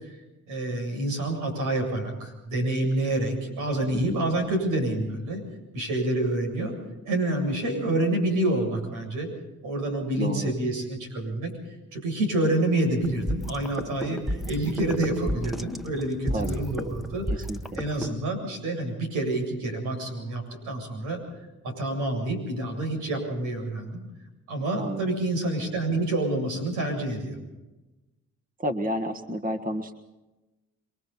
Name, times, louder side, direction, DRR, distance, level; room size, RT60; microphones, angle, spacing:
voice 1, 0.5-5.4 5.7-6.8 7.1-9.3 9.6-11.5 11.9-17.4 17.7-21.2 21.6-24.0 24.5-27.4, right 1 dB, 90° right, 2 dB, 7.8 m, -28 dB
voice 2, 10.2-10.5 16.3-16.6 17.3-17.8 24.8-25.1 28.6-29.9, equal, 30° right, 7 dB, 1.6 m, -31 dB
sound 1, 13.0-18.1, equal, ahead, 1.1 m, -33 dB
29.5 x 23.0 x 4.3 m, 1.1 s
cardioid pair, 90°, 30 cm